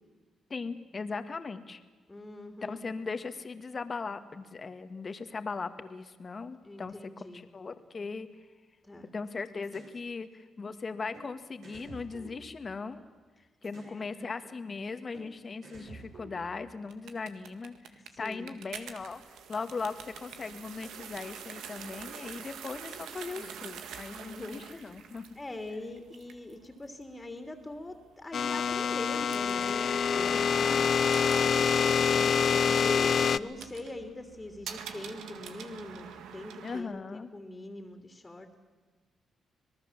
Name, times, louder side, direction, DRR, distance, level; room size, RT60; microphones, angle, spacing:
voice 1, 0.5-1.8 2.6-8.3 9.1-13.0 13.6-25.3 30.3-30.9 36.6-37.3, left 4 dB, 40° left, 10 dB, 1.8 m, -39 dB
voice 2, 2.1-2.8 6.6-7.4 8.9-9.1 13.8-14.3 17.9-18.5 23.3-23.6 24.1-25.1 25.3-31.9 32.5-38.5, left 2 dB, 20° left, 5 dB, 3.0 m, -43 dB
sound 1, 9.6-9.9 11.1-11.3 11.6-13.0 13.6-14.0 15.1-15.3 15.6-16.7, right 3 dB, 70° right, 6.8 m, -50 dB
sound 2, 16.9-36.8, right 8 dB, 85° right, 1.8 m, -47 dB
sound 3, 28.3-33.4, left 6 dB, 55° left, 0.7 m, -26 dB
26.0 x 19.5 x 7.4 m, 1.4 s
cardioid pair, 75°, 0 cm